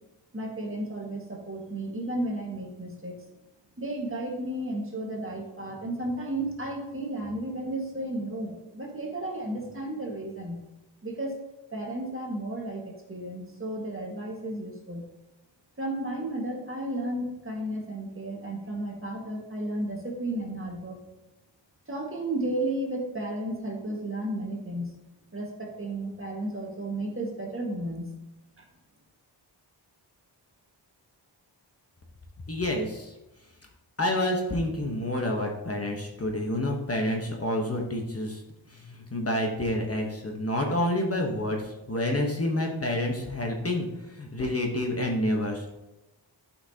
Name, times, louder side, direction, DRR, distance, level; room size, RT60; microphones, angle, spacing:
voice 1, 0.3-3.1 3.8-10.6 11.0-11.3 11.7-15.0 15.8-20.9 21.9-24.9 25.3-28.1 28.6-28.7, right 1 dB, 30° right, 0 dB, 1.7 m, -33 dB
voice 2, 32.5-33.1 34.0-38.4 38.9-45.6, left 1 dB, 30° left, 1 dB, 1.1 m, -28 dB
12.0 x 5.8 x 2.8 m, 0.99 s
wide cardioid pair, 105°, 45 cm